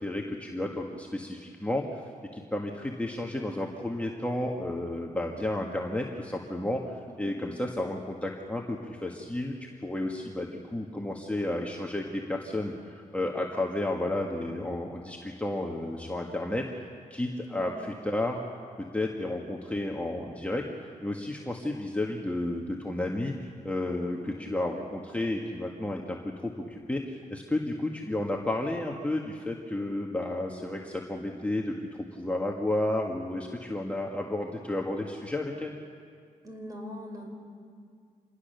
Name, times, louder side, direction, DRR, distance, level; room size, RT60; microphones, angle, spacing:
voice 1, 0.0-2.0 2.3-16.6 17.1-18.4 18.8-20.6 21.0-31.7 32.2-35.8, left 1 dB, 10° left, -1 dB, 1.7 m, -32 dB
voice 2, 7.1-7.4 17.5-18.0 24.1-24.4 36.4-37.3, left 1 dB, 25° right, 3 dB, 4.7 m, -43 dB
26.5 x 19.5 x 6.8 m, 2.2 s
cardioid pair, 90°, 15 cm